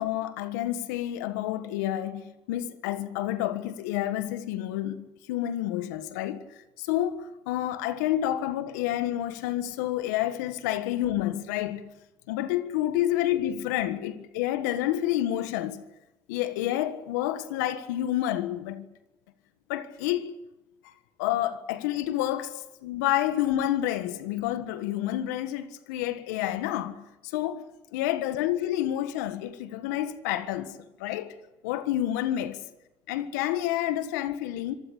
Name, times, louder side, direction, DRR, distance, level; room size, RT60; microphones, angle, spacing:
voice 1, 0.0-2.2 2.5-5.0 5.3-6.4 6.8-7.2 7.5-11.9 12.3-15.8 16.3-18.8 19.7-20.3 21.2-22.5 22.8-26.9 27.3-27.6 27.9-30.7 31.0-31.3 31.6-32.6 33.1-34.7, left 13 dB, 85° left, 1.5 m, -29 dB
25.5 x 15.0 x 10.0 m
supercardioid pair, 70°, 9 cm